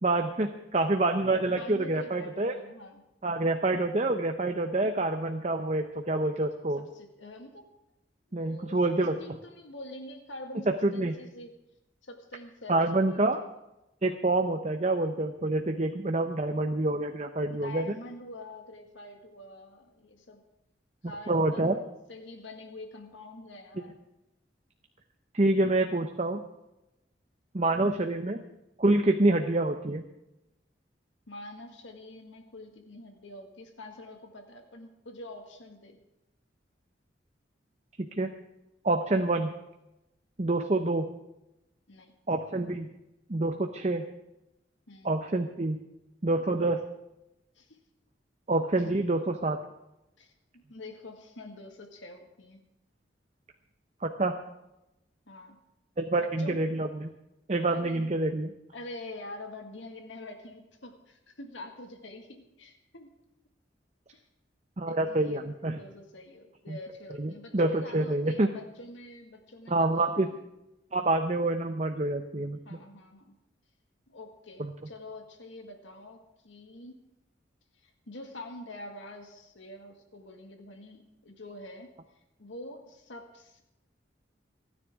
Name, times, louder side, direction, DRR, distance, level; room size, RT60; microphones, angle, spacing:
voice 1, 0.0-2.5 3.2-6.8 8.3-9.2 10.8-11.1 12.7-13.4 14.0-17.8 21.3-21.8 25.3-26.4 27.5-28.4 28.8-30.0 38.0-38.3 38.8-39.5 40.4-41.1 42.3-42.9 43.3-44.0 45.0-45.8 46.2-46.8 48.5-49.6 54.0-54.4 56.0-57.1 57.5-58.5 64.8-65.8 66.7-66.8 67.2-68.5 69.7-70.3 70.9-72.6, right 2 dB, 35° right, 5 dB, 0.7 m, -27 dB
voice 2, 1.5-3.0 6.8-7.7 8.4-8.8 9.2-11.5 12.0-13.3 17.5-20.4 21.0-23.9 31.3-36.0 41.9-42.1 44.9-45.2 47.6-47.8 48.8-48.9 50.2-52.6 55.3-55.6 56.2-56.6 57.7-58.1 58.7-63.1 64.1-64.2 64.8-70.4 72.7-73.3 74.1-76.2 76.4-77.0 77.8-81.9 82.4-83.6, left 2 dB, 85° left, 4 dB, 1.9 m, -46 dB
29.0 x 9.9 x 3.6 m, 0.91 s
head